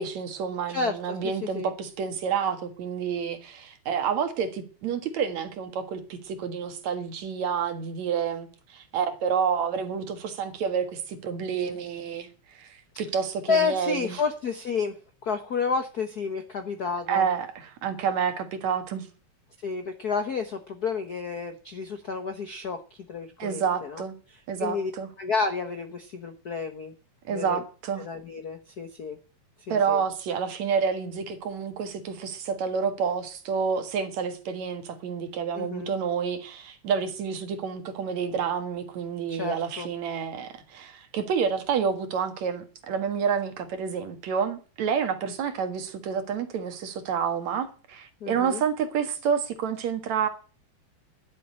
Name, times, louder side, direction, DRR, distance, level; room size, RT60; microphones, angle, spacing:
voice 1, 0.0-14.2 17.1-19.1 23.4-24.2 24.5-25.1 27.3-28.0 29.7-50.3, right 6 dB, 70° right, 2.9 m, -29 dB
voice 2, 0.7-1.2 1.5-1.7 13.5-15.0 15.2-17.2 19.6-22.8 23.1-24.0 24.6-24.9 25.2-26.9 27.3-27.6 28.0-29.2 29.7-30.0 35.5-35.9 39.3-39.9 48.2-48.6, left 5 dB, 60° left, 1.0 m, -30 dB
12.0 x 7.6 x 8.6 m
omnidirectional pair, 3.3 m